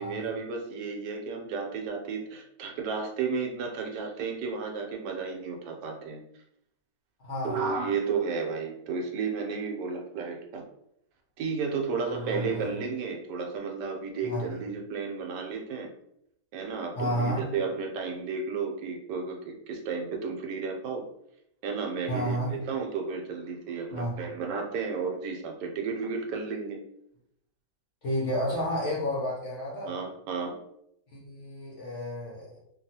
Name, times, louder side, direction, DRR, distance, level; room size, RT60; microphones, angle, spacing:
voice 1, 0.0-6.2 7.4-10.6 11.4-15.9 16.5-21.0 21.6-26.8 29.8-30.6, right 5 dB, 80° right, 2 dB, 1.2 m, -33 dB
voice 2, 7.2-7.6 11.9-12.6 14.2-14.4 17.0-17.5 22.1-22.5 23.9-24.2 28.0-30.0 31.1-32.5, equal, 60° left, -5 dB, 0.8 m, -31 dB
3.0 x 2.3 x 2.7 m, 0.75 s
omnidirectional pair, 1.9 m